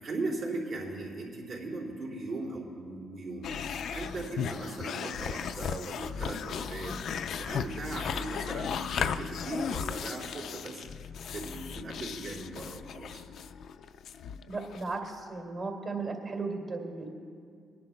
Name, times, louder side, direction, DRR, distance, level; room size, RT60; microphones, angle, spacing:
voice 1, 0.0-10.9 11.3-13.2, right 2 dB, 75° right, -5 dB, 3.4 m, -38 dB
sound 1, 3.4-15.2, left 7 dB, 70° left, 0.4 m, -36 dB
voice 2, 14.5-17.1, right 3 dB, 50° right, 2 dB, 2.1 m, -35 dB
26.0 x 11.0 x 2.2 m, 2.3 s
cardioid pair, 90°, 0 cm